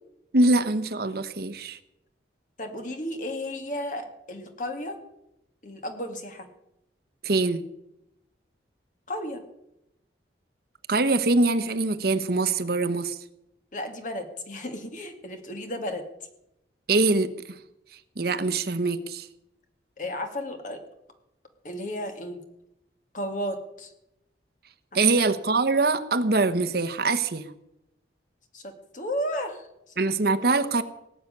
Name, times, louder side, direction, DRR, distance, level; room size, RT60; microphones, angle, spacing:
voice 1, 0.3-1.8 7.2-7.6 10.9-13.2 16.9-17.3 18.2-19.3 24.9-27.5 30.0-30.8, right 3 dB, 60° right, 11 dB, 1.0 m, -23 dB
voice 2, 2.6-5.0 5.6-6.5 9.1-9.4 13.7-16.0 20.0-20.8 21.6-22.4 23.1-23.9 24.9-25.1 28.5-29.7 30.2-30.4, equal, 45° left, 5 dB, 2.2 m, -33 dB
18.5 x 6.7 x 9.7 m, 0.85 s
head